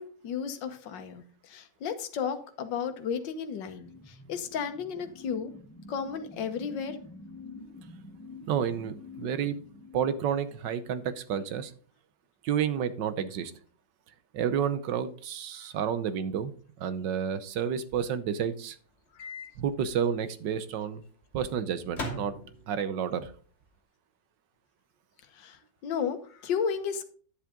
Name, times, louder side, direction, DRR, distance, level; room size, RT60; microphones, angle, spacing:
voice 1, 0.0-5.5 5.9-7.0 15.6-15.7 19.1-19.2 25.3-27.0, left 7 dB, 75° left, 8 dB, 1.7 m, -34 dB
sound 1, 3.7-10.4, left 3 dB, 15° left, 0.4 m, -47 dB
voice 2, 8.5-9.6 9.9-11.7 12.4-13.5 14.3-18.8 19.6-21.0 21.3-22.3 22.7-23.3, right 8 dB, 75° right, 12 dB, 1.5 m, -30 dB
Microwave oven, 19.2-19.5 19.8-20.0 21.9-22.9, left 1 dB, 35° left, 2.4 m, -38 dB
10.5 x 7.5 x 3.7 m, 0.43 s
omnidirectional pair, 2.0 m